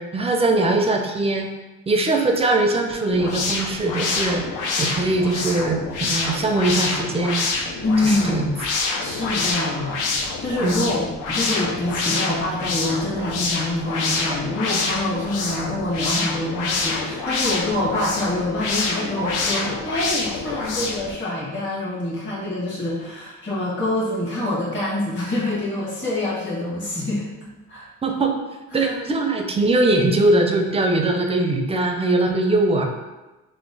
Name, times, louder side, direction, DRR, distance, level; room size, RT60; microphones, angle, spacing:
voice 1, 0.0-1.5 1.9-4.4 4.8-5.8 6.1-7.5 8.0-8.5 10.6-10.8 28.0-28.3 28.7-32.9, right 2 dB, 20° right, 3 dB, 0.4 m, -21 dB
sound 1, 3.1-21.1, left 3 dB, 85° left, 0.6 m, -26 dB
voice 2, 7.8-8.5 9.0-27.9 28.7-28.9, left 1 dB, 40° left, -7 dB, 1.2 m, -26 dB
2.9 x 2.0 x 3.9 m, 1.1 s
cardioid pair, 90°, 30 cm